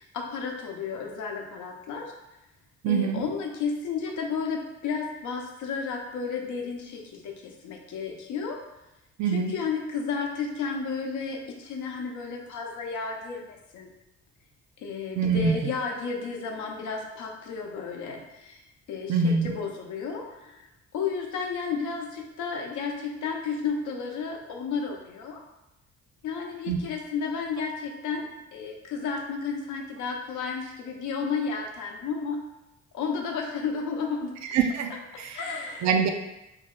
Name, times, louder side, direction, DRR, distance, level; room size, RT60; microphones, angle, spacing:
voice 1, 0.0-2.1 2.9-8.6 9.3-13.9 14.8-18.6 18.9-20.7 20.9-25.4 26.2-32.4 32.9-34.3 35.3-35.9, left 5 dB, 80° left, 1 dB, 0.6 m, -32 dB
voice 2, 2.8-3.2 9.2-9.5 15.2-15.7 19.1-19.5 26.7-26.8 34.5-35.4 35.8-36.1, right 5 dB, 65° right, 5 dB, 0.5 m, -24 dB
2.7 x 2.1 x 3.7 m, 0.93 s
cardioid pair, 90°, 30 cm